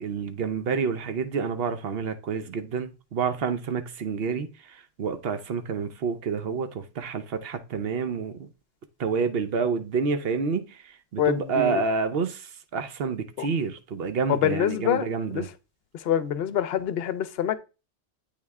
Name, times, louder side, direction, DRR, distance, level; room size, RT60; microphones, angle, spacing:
voice 1, 0.0-4.5 5.0-8.5 9.0-10.7 11.1-12.5 12.7-15.5, right 5 dB, 60° right, 0.8 m, -28 dB
voice 2, 11.2-11.8 13.4-13.5 14.3-15.5 16.0-17.6, left 9 dB, 65° left, 0.8 m, -26 dB
8.3 x 3.2 x 3.5 m
omnidirectional pair, 1.2 m